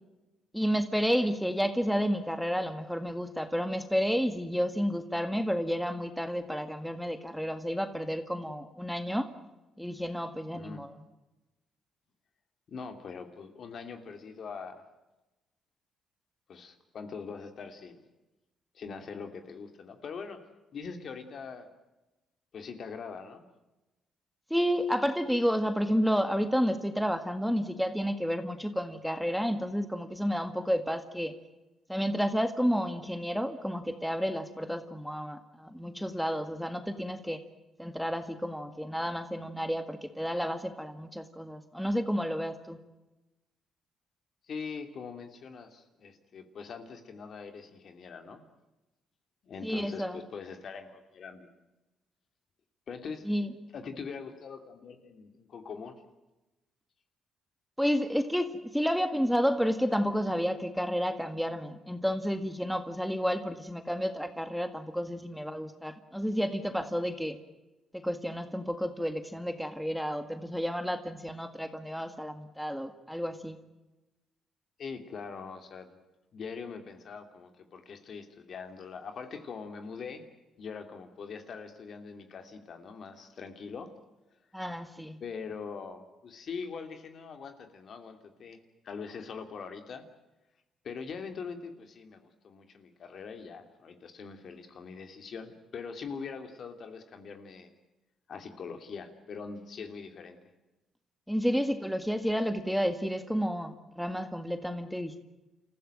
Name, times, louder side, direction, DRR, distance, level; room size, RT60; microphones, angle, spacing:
voice 1, 0.5-9.3 9.8-10.9 24.5-31.3 31.9-37.4 37.8-42.8 49.6-50.2 53.3-53.5 57.8-67.4 67.9-73.6 84.5-85.2 101.3-105.2, equal, ahead, 8 dB, 1.8 m, -31 dB
voice 2, 10.5-10.8 12.7-14.8 16.5-18.0 18.7-20.4 20.7-21.7 22.5-23.4 44.5-48.4 49.4-51.5 52.9-53.3 53.7-56.0 74.8-76.0 76.3-80.2 80.6-83.9 85.2-88.6 88.8-90.0 90.8-97.7 98.3-100.4, left 5 dB, 55° left, 7 dB, 2.8 m, -42 dB
28.5 x 15.0 x 9.1 m, 1.0 s
cardioid pair, 90°, 0 cm